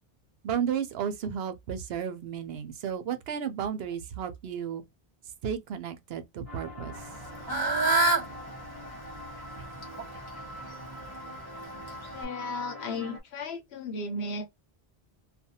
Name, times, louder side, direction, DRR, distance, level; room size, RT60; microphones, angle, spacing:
voice 1, 0.4-4.8 5.4-6.9, right 8 dB, 70° right, 0.8 m, -33 dB
sound 1, 6.5-13.2, left 1 dB, 20° right, 0.9 m, -44 dB
Fowl / Bird, 6.9-12.2, right 3 dB, 25° left, 0.9 m, -30 dB
voice 2, 12.1-14.5, left 3 dB, 75° left, 1.0 m, -35 dB
2.5 x 2.2 x 2.7 m
omnidirectional pair, 1.1 m